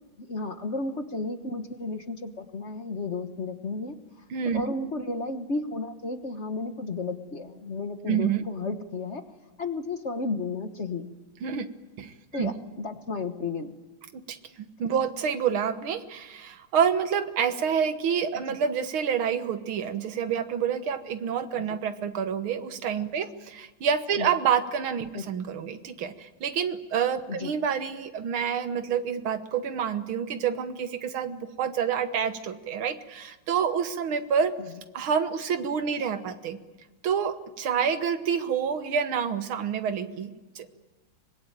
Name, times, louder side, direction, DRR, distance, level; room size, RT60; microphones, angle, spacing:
voice 1, 0.2-3.9 4.5-9.2 9.6-11.0 12.3-13.7 18.5-18.6 24.2-24.3 25.1-25.2 27.3-27.5 36.0-36.1, left 3 dB, 40° left, 7 dB, 1.4 m, -33 dB
voice 2, 4.3-4.6 8.1-8.4 11.4-11.7 12.0-12.5 14.3-14.4 14.8-34.5 34.9-36.6 37.0-40.7, right 7 dB, 90° right, 10 dB, 2.1 m, -28 dB
25.0 x 21.0 x 9.2 m, 1.2 s
omnidirectional pair, 2.2 m